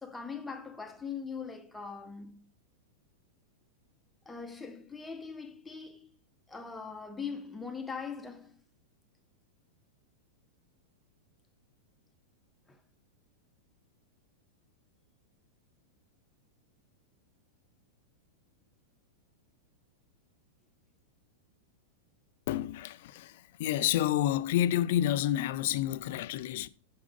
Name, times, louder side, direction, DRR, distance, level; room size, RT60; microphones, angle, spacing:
voice 1, 0.0-2.5 4.3-6.1 6.5-8.6 12.7-12.8, left 5 dB, 5° left, 0.7 m, -41 dB
voice 2, 22.5-26.7, left 12 dB, 55° left, 0.4 m, -29 dB
6.2 x 3.7 x 5.1 m
supercardioid pair, 160°, 0 cm